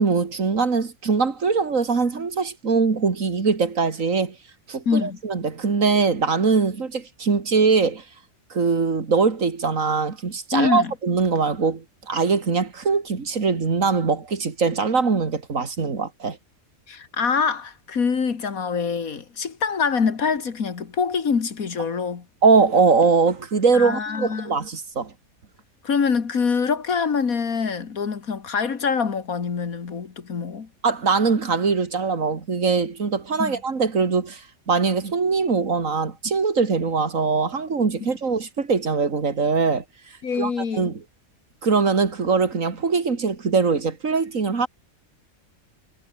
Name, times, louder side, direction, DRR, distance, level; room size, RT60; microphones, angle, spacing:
voice 1, 0.0-4.3 4.7-8.0 8.5-16.4 22.4-25.1 30.8-39.8 40.3-41.0 41.6-44.7, right 4 dB, 65° right, 2.7 m, -22 dB
voice 2, 4.9-5.2 10.5-10.9 16.9-22.3 23.7-24.6 25.8-30.7 33.4-33.6 40.2-40.9, left 5 dB, 80° left, 2.4 m, -25 dB
omnidirectional pair, 1.5 m